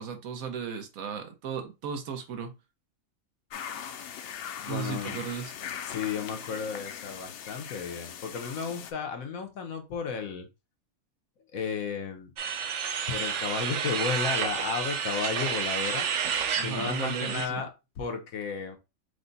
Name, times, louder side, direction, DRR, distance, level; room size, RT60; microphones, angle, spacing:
voice 1, 0.0-2.5 4.7-5.5 16.5-17.7, right 7 dB, 85° right, 1.3 m, -35 dB
sound 1, 3.5-8.9, left 8 dB, 65° left, 0.6 m, -40 dB
voice 2, 4.6-5.2 5.8-10.5 11.5-12.3 13.1-16.1 16.6-17.7 18.0-18.8, left 6 dB, 85° left, 1.3 m, -33 dB
sound 2, 12.4-17.5, right 7 dB, 65° right, 0.9 m, -30 dB
4.8 x 2.1 x 4.0 m
omnidirectional pair, 1.4 m